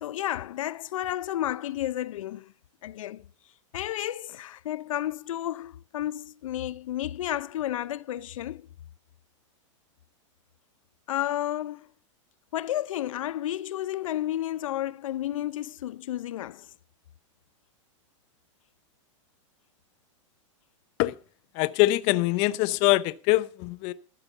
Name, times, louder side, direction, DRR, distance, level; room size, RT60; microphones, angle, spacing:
voice 1, 0.0-2.5 2.8-3.3 3.7-8.7 11.1-11.9 12.5-16.7, left 13 dB, 85° left, 0.5 m, -32 dB
voice 2, 21.5-23.9, left 19 dB, 35° left, 0.5 m, -23 dB
12.0 x 6.7 x 7.0 m
supercardioid pair, 155°, 16 cm